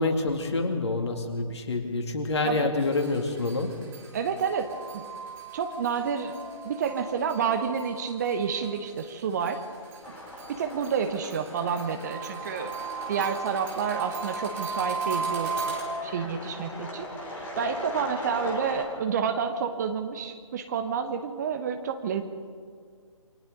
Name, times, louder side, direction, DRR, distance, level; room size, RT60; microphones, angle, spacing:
voice 1, 0.0-3.8, left 3 dB, 50° left, 4 dB, 2.5 m, -27 dB
sound 1, 2.8-9.0 9.4-15.8, right 5 dB, 15° right, 2.9 m, -37 dB
voice 2, 4.1-5.1 5.5-6.3 6.6-9.6 10.5-12.7 13.1-15.5 16.0-17.1 17.4-22.2, right 6 dB, 30° right, 6 dB, 1.2 m, -29 dB
sound 2, 10.0-18.8, left 1 dB, 10° left, 2.6 m, -39 dB
28.5 x 23.5 x 4.0 m, 2.1 s
figure-of-eight pair, 140°, 18 cm